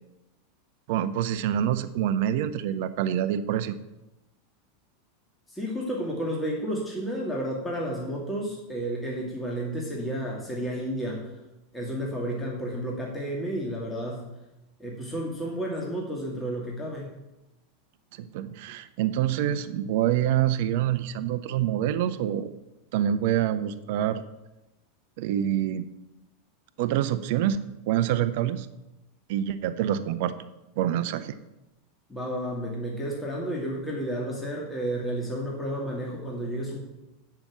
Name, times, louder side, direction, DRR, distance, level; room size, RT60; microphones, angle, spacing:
voice 1, 0.9-3.7 18.1-22.5 22.9-24.2 25.2-25.8 26.8-28.7 29.3-30.4 30.8-31.3, right 11 dB, 60° right, 12 dB, 0.6 m, -26 dB
voice 2, 5.5-11.3 11.7-14.3 14.8-17.1 32.1-36.8, right 1 dB, 10° left, -3 dB, 2.3 m, -31 dB
8.7 x 5.7 x 7.3 m, 0.98 s
figure-of-eight pair, 90°, 0 cm